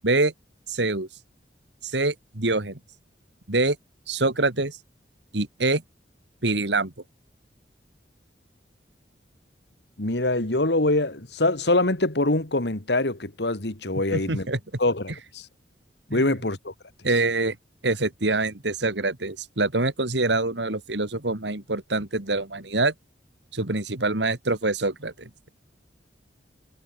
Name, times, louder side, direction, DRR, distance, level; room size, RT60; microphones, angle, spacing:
voice 1, 0.7-1.1 1.8-2.8 3.5-3.8 4.1-4.8 5.3-5.8 6.4-6.9 14.1-14.6 16.1-16.2 17.0-17.6 17.8-22.9 23.5-25.5, right 2 dB, 80° right, 2.8 m, -25 dB
voice 2, 10.0-14.5 14.8-15.5 16.1-16.7, left 2 dB, 70° left, 2.3 m, -24 dB
head